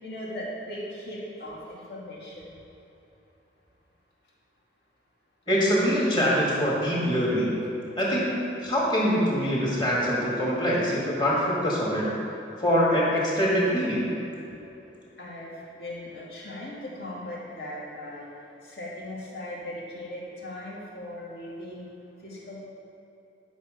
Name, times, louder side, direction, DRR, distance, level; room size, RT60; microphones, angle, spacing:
voice 1, 0.0-2.5 15.2-18.3 18.6-21.8 22.2-22.5, left 1 dB, 60° left, -5 dB, 2.6 m, -38 dB
voice 2, 5.5-7.5 8.0-8.3 8.6-12.1 12.6-14.0, equal, 25° left, -5 dB, 2.1 m, -24 dB
11.5 x 6.4 x 5.2 m, 3.0 s
head